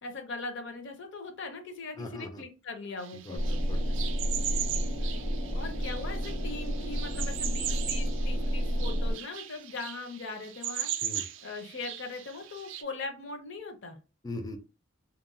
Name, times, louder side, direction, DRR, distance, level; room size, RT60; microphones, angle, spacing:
voice 1, 0.0-3.6 5.5-11.1 11.4-14.0, left 3 dB, 60° left, 5 dB, 0.6 m, -40 dB
voice 2, 2.0-2.4 3.2-3.4 3.7-4.5 11.0-11.2 14.2-14.6, left 2 dB, 20° left, 7 dB, 0.3 m, -40 dB
sound 1, 3.0-12.8, right 10 dB, 65° right, 0.3 m, -38 dB
sound 2, 3.4-9.1, equal, 85° left, 1.0 m, -30 dB
2.9 x 2.1 x 2.5 m, 0.32 s
head